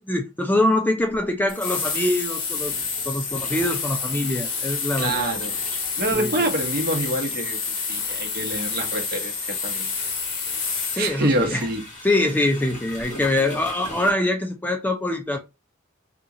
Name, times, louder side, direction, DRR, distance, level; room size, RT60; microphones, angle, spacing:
voice 1, 0.0-2.7 3.1-5.3 6.1-6.3 10.9-11.6 12.0-15.4, left 1 dB, 10° left, 0.4 m, -24 dB
sound 1, 1.1-1.2 2.6-14.1, left 1 dB, 40° left, 1.5 m, -42 dB
sound 2, 1.5-11.1, left 5 dB, 70° left, 1.0 m, -29 dB
voice 2, 5.0-5.5 6.0-9.9 11.0-11.9, right 1 dB, 50° right, 1.0 m, -26 dB
2.9 x 2.4 x 3.7 m
head